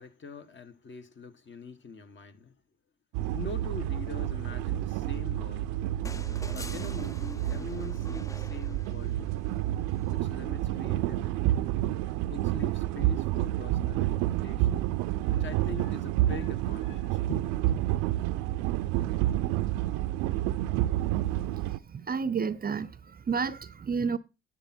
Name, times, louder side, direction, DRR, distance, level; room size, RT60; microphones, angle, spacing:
voice 1, 0.0-2.5 3.3-5.7 6.5-9.4 10.1-11.5 12.1-17.5, left 4 dB, 40° left, 1.8 m, -43 dB
sound 1, 3.1-21.8, right 14 dB, 85° right, 0.6 m, -29 dB
sound 2, 6.1-9.4 10.9-11.0, left 2 dB, 10° left, 0.5 m, -45 dB
voice 2, 21.5-24.2, right 5 dB, 30° right, 0.7 m, -31 dB
10.0 x 7.5 x 4.4 m
supercardioid pair, 80°, 30 cm